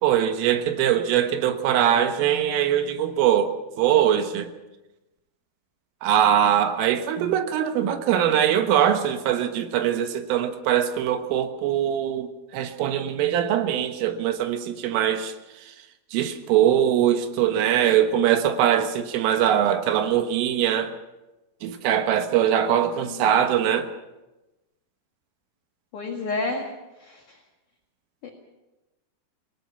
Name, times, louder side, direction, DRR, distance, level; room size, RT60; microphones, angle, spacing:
voice 1, 0.0-4.5 6.0-15.3 16.1-20.9 21.6-23.9, right 10 dB, 75° right, 7 dB, 3.8 m, -22 dB
voice 2, 23.0-23.5 25.9-26.7 27.0-27.4, left 3 dB, 55° left, 1 dB, 2.5 m, -31 dB
26.5 x 18.5 x 5.7 m, 1.0 s
omnidirectional pair, 6.0 m